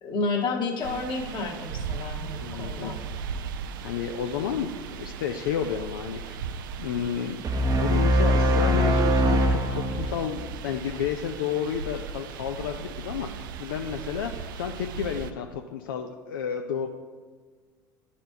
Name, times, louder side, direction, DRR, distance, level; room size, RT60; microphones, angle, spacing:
voice 1, 0.0-3.0, left 3 dB, 45° left, 0 dB, 1.3 m, -30 dB
sound 1, 0.8-15.3, right 6 dB, 75° right, 0.4 m, -38 dB
voice 2, 2.4-2.9 3.8-6.4 6.8-7.4 7.7-16.9, left 8 dB, 80° left, 4 dB, 0.4 m, -31 dB
sound 2, 7.4-10.8, equal, 35° right, 0.7 m, -22 dB
10.5 x 4.2 x 2.7 m, 1.5 s
hypercardioid pair, 75°, 11 cm